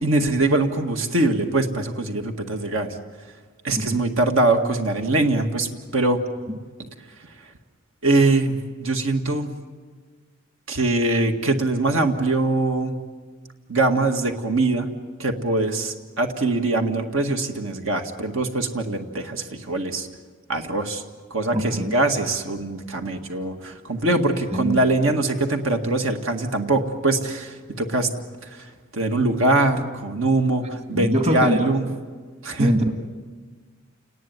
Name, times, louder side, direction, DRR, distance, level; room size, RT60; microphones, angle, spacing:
voice 1, 0.0-3.0 3.6-6.2 8.0-9.6 10.7-12.9 13.7-14.9 15.2-20.1 20.5-21.0 21.3-28.1 28.6-28.7 28.9-31.9 32.4-32.8, right 2 dB, 70° right, 4 dB, 2.0 m, -22 dB
voice 2, 21.5-21.9 24.5-24.9 30.9-31.8 32.6-32.9, equal, 30° right, 5 dB, 2.0 m, -23 dB
29.5 x 19.5 x 9.4 m, 1.5 s
head